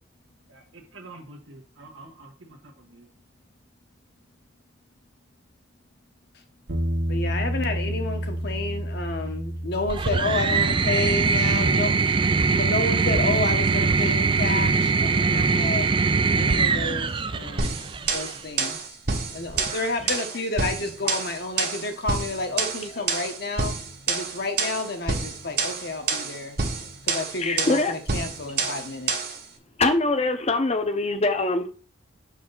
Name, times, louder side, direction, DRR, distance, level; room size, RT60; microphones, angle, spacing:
voice 1, 0.5-2.6 2.9-3.1, right 2 dB, 90° right, 1.3 m, -46 dB
sound 1, 6.7-15.6, equal, 75° right, 1.3 m, -32 dB
voice 2, 7.1-11.9 12.4-15.9 16.3-19.0 19.3-23.8 24.1-26.6 27.0-29.2, left 3 dB, 60° left, 1.3 m, -30 dB
sound 2, 9.9-18.3 19.5-20.1, right 4 dB, 25° right, 0.4 m, -22 dB
sound 3, 17.6-29.4, right 4 dB, 55° right, 1.2 m, -28 dB
voice 3, 27.4-27.9 29.8-31.7, left 2 dB, 35° left, 0.8 m, -23 dB
6.8 x 4.7 x 4.0 m
head